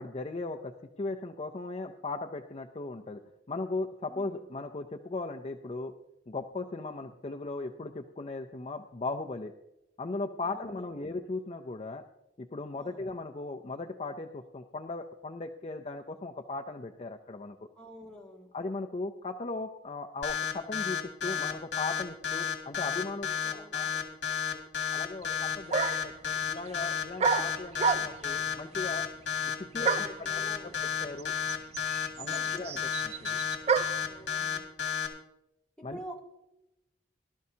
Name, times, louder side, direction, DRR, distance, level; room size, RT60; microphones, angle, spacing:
voice 1, 0.0-3.2 3.5-5.9 6.3-9.5 10.0-12.0 12.4-17.6 18.5-24.2 24.5-29.1 29.7-30.3 30.6-31.3 32.2-33.4 35.8-36.0, left 3 dB, 35° left, 4 dB, 0.5 m, -38 dB
voice 2, 4.1-4.4 10.4-11.1 12.8-13.1 17.8-18.5 23.4-23.9 29.8-30.8 32.2-32.6 34.0-34.6 35.9-36.2, equal, 5° left, -4 dB, 2.4 m, -48 dB
sound 1, 20.2-35.1, left 8 dB, 80° left, 2.1 m, -31 dB
sound 2, 25.2-25.3 25.7-26.2 27.2-28.4 29.8-30.3 31.2-31.3 31.5-34.1, right 6 dB, 35° right, 0.4 m, -29 dB
18.5 x 12.5 x 2.8 m, 0.92 s
head